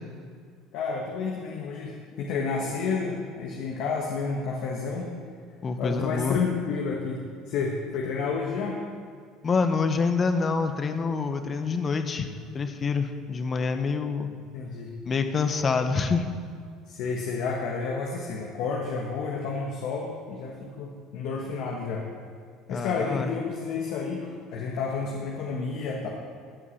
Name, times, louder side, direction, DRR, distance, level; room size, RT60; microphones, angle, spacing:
voice 1, 0.7-5.1 5.8-8.8 14.5-15.0 16.9-22.0 22.7-26.1, left 5 dB, 70° left, -1 dB, 1.5 m, -30 dB
voice 2, 5.6-6.4 9.4-12.3 12.5-14.3 15.0-16.2 22.7-23.3, left 4 dB, 30° left, 8 dB, 1.0 m, -26 dB
14.5 x 4.9 x 8.4 m, 2.1 s
supercardioid pair, 105°, 0 cm